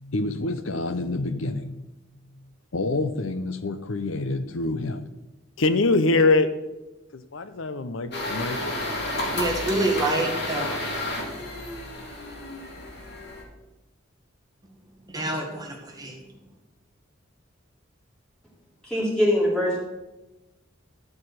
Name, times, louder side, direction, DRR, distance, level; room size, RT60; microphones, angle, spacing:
voice 1, 0.0-1.9 2.7-5.1 5.6-6.5 7.1-8.8, left 3 dB, 80° left, 12 dB, 0.8 m, -25 dB
sound 1, 8.1-13.4, left 1 dB, 55° left, 2.6 m, -31 dB
voice 2, 9.3-10.9 15.1-16.2, right 2 dB, 20° right, 0 dB, 1.9 m, -27 dB
voice 3, 18.8-19.8, equal, 5° left, -6 dB, 3.3 m, -22 dB
12.5 x 5.0 x 6.4 m, 1.0 s
head